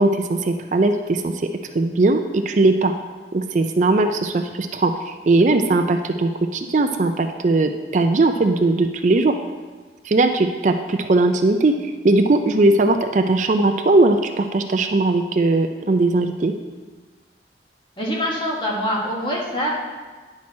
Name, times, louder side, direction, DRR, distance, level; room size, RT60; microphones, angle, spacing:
voice 1, 0.0-1.5 1.7-2.9 3.3-9.4 10.0-16.5, right 2 dB, 40° right, 6 dB, 0.4 m, -19 dB
voice 2, 18.0-19.7, equal, 25° left, -3 dB, 1.5 m, -24 dB
9.6 x 6.1 x 4.2 m, 1.4 s
head